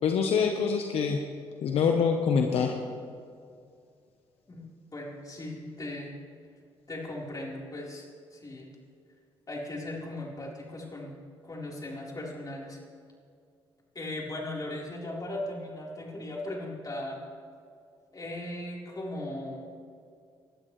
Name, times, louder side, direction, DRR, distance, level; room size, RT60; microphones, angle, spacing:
voice 1, 0.0-1.2 1.6-2.7, left 6 dB, 75° left, 3 dB, 1.0 m, -25 dB
voice 2, 4.9-6.1 6.9-8.1 8.3-8.7 9.5-11.2 11.4-12.8 13.9-17.2 18.1-19.7, left 1 dB, 35° left, -3 dB, 4.0 m, -38 dB
20.0 x 12.0 x 3.2 m, 2.3 s
supercardioid pair, 65°, 10 cm